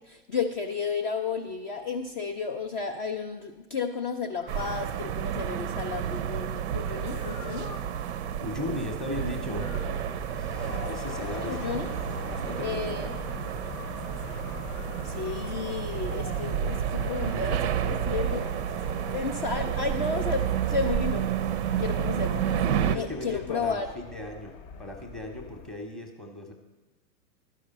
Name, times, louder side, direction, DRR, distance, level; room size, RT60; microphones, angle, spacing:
voice 1, 0.0-7.7 8.4-8.5 11.5-11.9 12.6-13.1 15.0-18.5 19.1-21.5 21.8-22.6 22.9-23.9, left 5 dB, 35° left, 3 dB, 0.4 m, -32 dB
sound 1, 4.4-23.7, left 6 dB, 90° left, 0.9 m, -48 dB
sound 2, 4.5-23.0, right 9 dB, 45° right, 0.4 m, -30 dB
voice 2, 8.4-9.8 10.3-11.6 12.2-13.1 22.7-26.5, left 1 dB, ahead, 3 dB, 0.7 m, -37 dB
Fixed-wing aircraft airplane, 9.5-25.9, left 7 dB, 50° left, 0.8 m, -43 dB
12.0 x 5.0 x 5.4 m, 1.1 s
hypercardioid pair, 125°, 48 cm